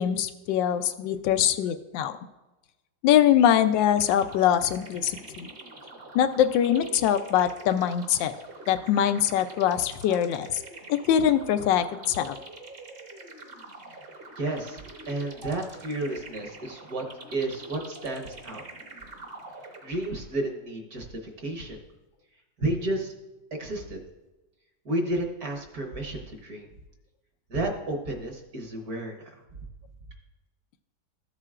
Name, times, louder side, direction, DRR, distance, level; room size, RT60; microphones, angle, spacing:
voice 1, 0.0-2.1 3.0-5.5 6.1-8.3 8.7-10.6 10.9-12.4, left 10 dB, 85° left, 10 dB, 1.3 m, -23 dB
sound 1, 4.0-20.4, right 2 dB, 40° right, 1.0 m, -45 dB
voice 2, 14.4-14.8 15.1-17.0 17.3-18.6 19.8-21.8 22.6-23.1 23.6-24.0 24.9-26.7 27.5-29.2, right 1 dB, 55° right, 2 dB, 1.6 m, -31 dB
14.0 x 7.7 x 2.4 m, 1.1 s
omnidirectional pair, 2.0 m